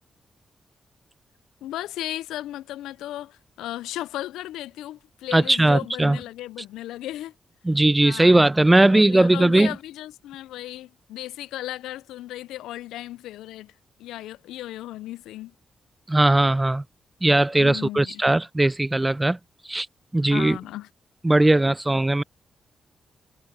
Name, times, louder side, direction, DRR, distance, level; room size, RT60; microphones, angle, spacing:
voice 1, 1.6-7.3 8.0-8.4 8.8-13.7 14.0-15.5 17.6-18.2 20.3-20.9, left 14 dB, 85° left, 0.4 m, -35 dB
voice 2, 5.3-6.2 7.6-9.8 16.1-16.8 17.2-19.4 19.7-19.9 20.1-20.6 21.2-22.2, right 2 dB, 20° right, 0.4 m, -19 dB
supercardioid pair, 40°, 0 cm